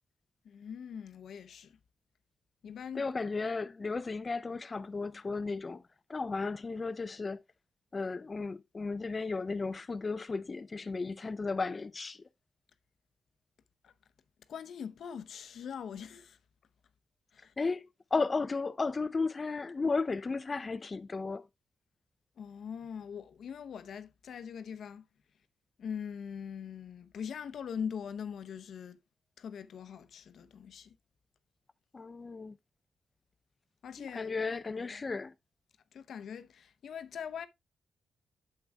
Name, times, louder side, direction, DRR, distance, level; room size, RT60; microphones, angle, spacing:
voice 1, 0.4-1.7 2.6-3.1 13.8-13.9 14.5-16.4 17.3-17.5 22.4-25.1 25.8-29.0 29.4-31.0 33.8-35.0 35.9-37.5, left 7 dB, 75° left, 0.7 m, -42 dB
voice 2, 2.9-5.8 6.1-7.4 7.9-12.2 17.6-21.5 31.9-32.6 34.0-35.3, left 4 dB, 35° left, 0.3 m, -34 dB
8.7 x 7.5 x 2.2 m
cardioid pair, 90°, 0 cm